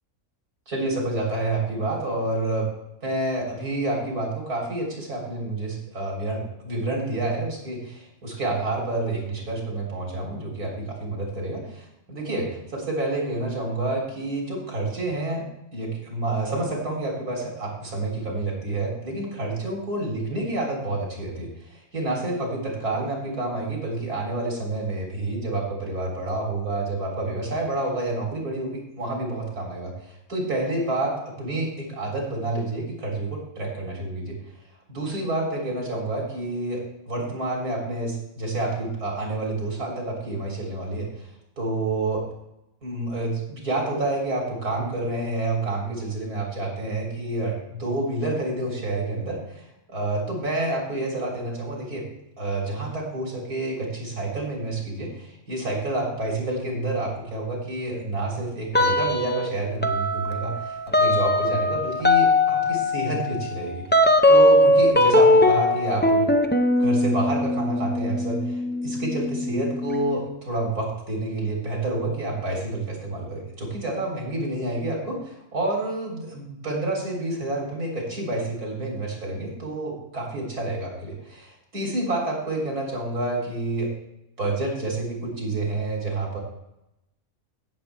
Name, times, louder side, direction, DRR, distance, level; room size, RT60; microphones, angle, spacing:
voice 1, 0.7-2.7 3.0-34.4 34.9-41.3 41.6-42.2 42.8-52.0 52.4-63.9 64.3-66.3 66.8-83.9 84.4-86.4, right 2 dB, 80° right, -2 dB, 4.0 m, -29 dB
sound 1, 58.7-59.5 59.8-70.2, left 1 dB, 15° left, 0.4 m, -20 dB
17.0 x 7.2 x 3.4 m, 0.87 s
omnidirectional pair, 1.6 m